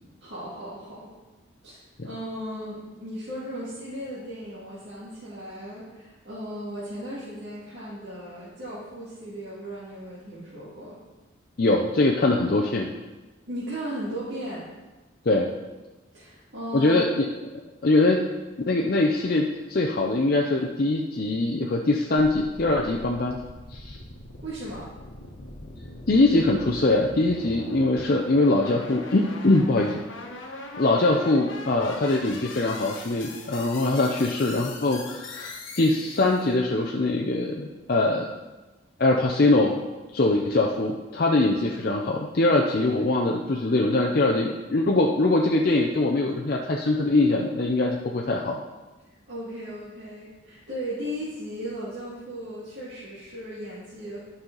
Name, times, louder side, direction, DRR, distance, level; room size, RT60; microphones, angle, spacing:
voice 1, 0.2-1.1 1.6-11.0 13.5-14.6 16.1-17.0 24.4-24.9 42.9-43.0 49.3-54.2, equal, 60° right, -10 dB, 2.2 m, -36 dB
voice 2, 11.6-12.9 15.3-15.5 16.7-17.3 17.8-18.2 18.7-23.4 23.7-24.0 26.1-30.0 30.8-38.3 39.0-39.8 40.1-48.6, left 2 dB, 50° left, 0 dB, 0.6 m, -22 dB
sound 1, 22.5-36.5, left 2 dB, 80° left, 1.2 m, -41 dB
11.5 x 5.6 x 3.9 m, 1.2 s
head